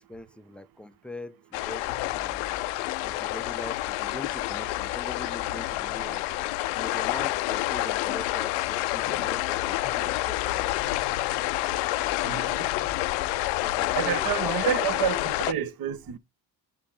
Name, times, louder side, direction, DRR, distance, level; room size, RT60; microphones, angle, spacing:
voice 1, 0.0-2.6 3.0-10.8 13.6-14.8, left 1 dB, ahead, 0.5 m, -42 dB
sound 1, 1.5-15.5, left 18 dB, 70° left, 0.6 m, -28 dB
sound 2, 1.8-15.2, left 4 dB, 85° right, 2.3 m, -45 dB
voice 2, 12.2-12.7 13.9-16.2, right 11 dB, 45° right, 0.9 m, -29 dB
8.1 x 5.8 x 3.3 m
hypercardioid pair, 50°, 50 cm